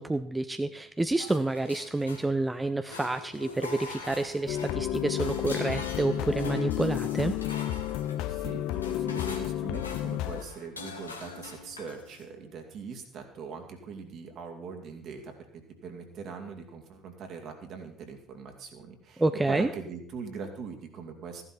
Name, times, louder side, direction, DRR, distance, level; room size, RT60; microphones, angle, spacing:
voice 1, 0.0-7.4 19.2-19.7, right 2 dB, 15° right, 10 dB, 0.7 m, -29 dB
sound 1, 1.2-2.5 2.8-12.3, left 3 dB, 90° left, 1.4 m, -44 dB
sound 2, 4.5-10.4, left 13 dB, 60° left, 0.6 m, -31 dB
voice 2, 8.3-21.4, right 5 dB, 55° right, 4 dB, 2.6 m, -41 dB
15.0 x 11.0 x 4.3 m, 0.67 s
figure-of-eight pair, 55°, 0 cm